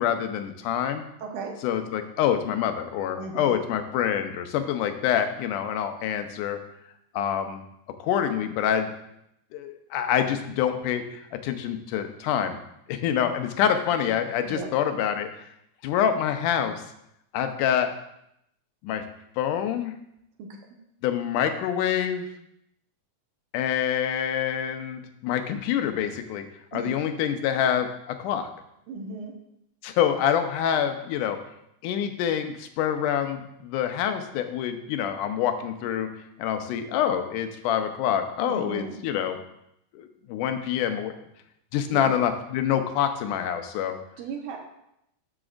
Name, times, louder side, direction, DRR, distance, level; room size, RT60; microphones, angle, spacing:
voice 1, 0.0-1.0 1.6-6.6 7.1-7.6 8.0-8.9 9.5-11.0 11.3-12.6 12.9-15.3 15.8-16.8 17.3-17.9 18.8-19.0 19.4-20.0 21.0-22.3 23.5-26.5 26.7-28.5 29.8-31.4 31.8-36.1 36.4-39.4 39.9-41.1 41.7-44.0, left 9 dB, 90° left, 7 dB, 2.2 m, -26 dB
voice 2, 1.2-1.6 3.2-3.6 14.5-14.7 20.4-20.5 26.7-26.9 28.9-29.4 38.4-38.9 41.9-42.1 44.2-44.6, right 4 dB, 80° right, 2 dB, 2.6 m, -35 dB
12.5 x 6.1 x 2.5 m, 0.78 s
omnidirectional pair, 3.6 m